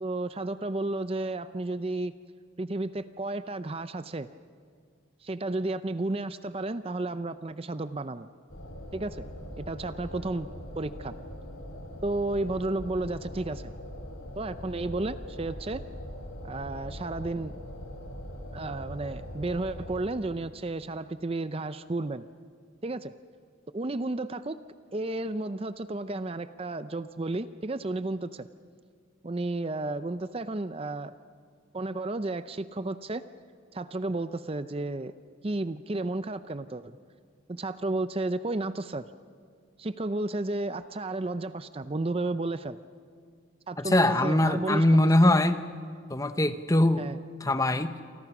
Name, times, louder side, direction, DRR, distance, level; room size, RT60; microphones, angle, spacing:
voice 1, 0.0-2.1 2.6-4.3 5.2-8.3 8.9-9.2 9.6-10.5 10.7-11.1 12.0-13.7 14.4-15.8 16.4-17.5 18.5-22.3 22.8-23.1 23.7-24.6 24.9-28.5 29.2-31.1 31.7-33.2 33.7-35.1 35.4-37.0 37.5-39.1 39.8-42.8 43.7-45.4 47.0-47.2, right 2 dB, 30° right, 12 dB, 0.5 m, -32 dB
sound 1, 8.5-20.0, equal, 85° left, 4.0 m, -41 dB
voice 2, 43.8-45.6 46.1-47.0 47.4-47.9, left 1 dB, 15° left, 10 dB, 0.9 m, -22 dB
29.0 x 24.5 x 6.1 m, 2.2 s
head